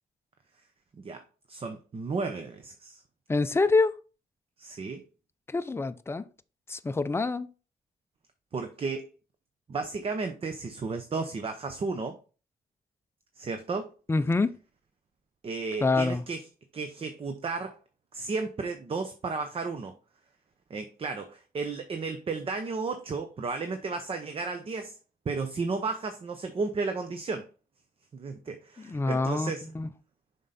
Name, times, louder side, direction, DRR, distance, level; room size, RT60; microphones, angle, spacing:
voice 1, 1.5-3.0 4.6-5.0 8.5-9.1 9.7-12.2 13.4-13.9 15.4-16.4 16.7-17.8 18.1-19.9 20.7-25.0 25.3-27.5 28.1-29.6, right 4 dB, 35° right, 0.7 m, -33 dB
voice 2, 3.3-4.0 5.5-6.3 6.7-7.5 14.1-14.5 15.8-16.2 28.8-29.9, left 3 dB, 15° left, 0.5 m, -26 dB
7.3 x 5.3 x 4.1 m
wide cardioid pair, 140°, 16 cm